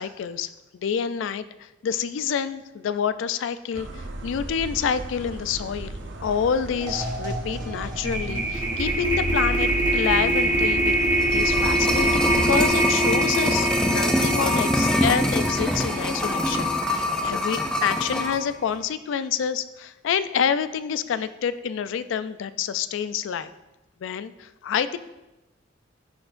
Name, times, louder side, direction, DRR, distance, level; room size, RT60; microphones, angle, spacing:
voice 1, 0.0-11.0 11.3-23.5 24.0-25.0, left 7 dB, 75° left, 14 dB, 0.3 m, -28 dB
sound 1, 3.7-12.7, right 1 dB, 65° right, 0.6 m, -33 dB
sound 2, 6.3-6.5 6.8-17.0, right 1 dB, 20° right, 1.1 m, -25 dB
sound 3, 11.0-18.4 18.7-18.8, left 1 dB, 5° left, 0.4 m, -24 dB
10.0 x 4.4 x 2.5 m, 1.0 s
head